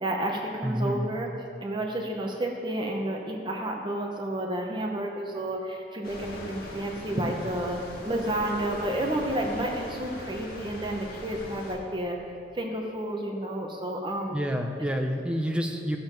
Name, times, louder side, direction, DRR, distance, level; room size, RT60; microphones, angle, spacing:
voice 1, 0.0-1.3 1.6-7.8 8.0-12.2 12.5-14.4, right 1 dB, 25° right, 1 dB, 0.9 m, -31 dB
voice 2, 0.6-1.1 14.3-16.0, equal, 5° right, 3 dB, 0.6 m, -28 dB
sound 1, 6.0-11.8, left 1 dB, 55° left, 1.8 m, -41 dB
15.0 x 7.3 x 5.3 m, 2.7 s
head